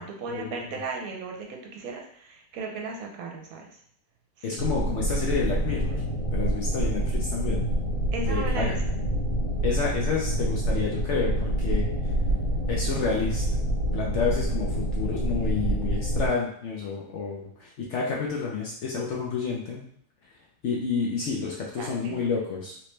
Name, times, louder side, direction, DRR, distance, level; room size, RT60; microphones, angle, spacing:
voice 1, 0.0-3.7 4.4-4.6 8.1-8.8 21.8-22.3, right 3 dB, 70° right, 1 dB, 1.0 m, -36 dB
voice 2, 4.4-6.0 6.3-7.6 8.3-8.7 9.6-11.8 12.7-13.4 13.9-19.9 20.6-22.7, left 5 dB, 65° left, -3 dB, 0.7 m, -29 dB
sound 1, 4.6-16.3, right 1 dB, 90° left, 1.4 m, -27 dB
3.2 x 2.9 x 3.1 m, 0.64 s
omnidirectional pair, 1.7 m